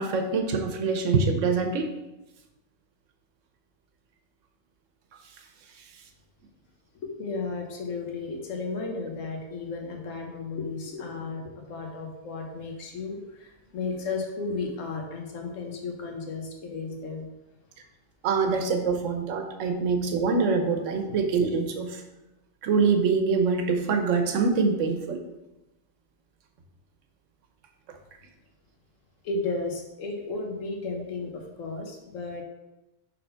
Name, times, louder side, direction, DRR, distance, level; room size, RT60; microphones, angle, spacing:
voice 1, 0.0-1.9 18.2-22.0 22.6-25.2, right 4 dB, 75° right, 5 dB, 1.2 m, -24 dB
voice 2, 7.0-17.3 19.8-19.9 21.1-21.2 29.2-32.4, left 3 dB, 80° left, 2 dB, 1.3 m, -34 dB
5.5 x 3.8 x 5.6 m, 0.99 s
omnidirectional pair, 1.3 m